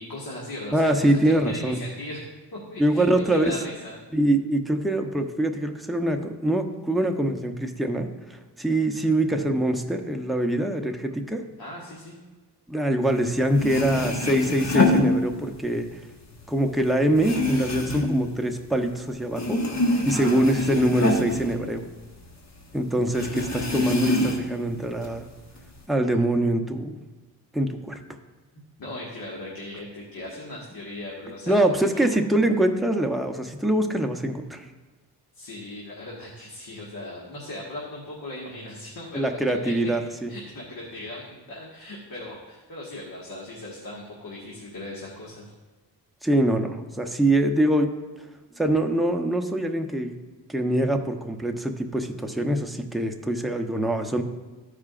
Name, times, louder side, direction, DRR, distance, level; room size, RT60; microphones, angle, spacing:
voice 1, 0.0-2.2 2.5-4.0 11.6-12.2 20.1-20.4 20.7-20.9 28.8-32.1 35.3-39.9 40.3-45.5, left 1 dB, 55° left, -4 dB, 1.7 m, -38 dB
voice 2, 0.7-1.8 2.8-3.6 4.1-11.4 12.7-15.9 16.5-19.8 20.0-21.8 22.7-25.2 25.9-27.0 27.5-28.0 31.5-34.7 39.1-40.3 46.2-47.9 48.6-50.2 50.5-54.2, right 1 dB, ahead, 4 dB, 0.8 m, -24 dB
sound 1, 13.3-13.4 13.5-15.8 16.1-19.0 19.3-22.3 22.6-22.7 23.1-24.6 25.0-25.8, left 2 dB, 40° left, 1.4 m, -26 dB
13.5 x 4.9 x 2.5 m, 1.2 s
cardioid pair, 55°, 41 cm